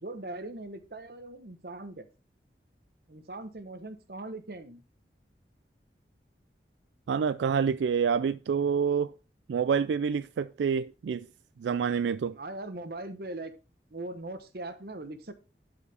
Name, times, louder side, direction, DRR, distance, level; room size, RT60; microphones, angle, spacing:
voice 1, 0.0-2.1 3.1-4.8 12.3-13.5 13.9-15.3, right 2 dB, 55° right, 1.0 m, -40 dB
voice 2, 7.1-9.1 9.5-11.3 11.6-12.4, right 6 dB, 85° right, 0.3 m, -27 dB
12.5 x 5.0 x 3.4 m
head